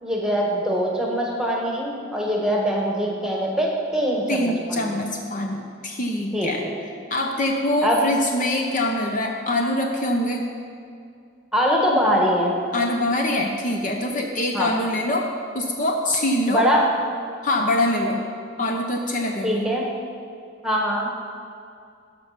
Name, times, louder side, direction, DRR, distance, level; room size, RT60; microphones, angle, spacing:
voice 1, 0.0-4.9 6.3-6.5 7.8-8.1 11.5-12.5 14.5-14.7 16.5-16.9 19.4-19.9 20.6-21.1, equal, 5° right, -1 dB, 1.4 m, -22 dB
voice 2, 4.3-6.6 7.1-10.5 12.7-15.3 15.5-16.7 17.4-18.2 18.6-19.7, left 1 dB, 40° left, 2 dB, 0.7 m, -24 dB
12.5 x 6.0 x 5.8 m, 2.4 s
head